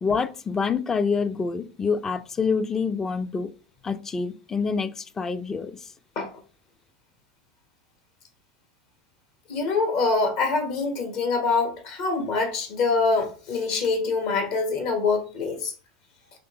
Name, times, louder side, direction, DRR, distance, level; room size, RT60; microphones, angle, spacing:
voice 1, 0.0-3.5 3.8-5.9, left 5 dB, 20° left, 0.4 m, -26 dB
voice 2, 9.5-15.7, left 4 dB, 60° left, 1.1 m, -25 dB
3.5 x 2.9 x 2.9 m
hypercardioid pair, 105°, 2 cm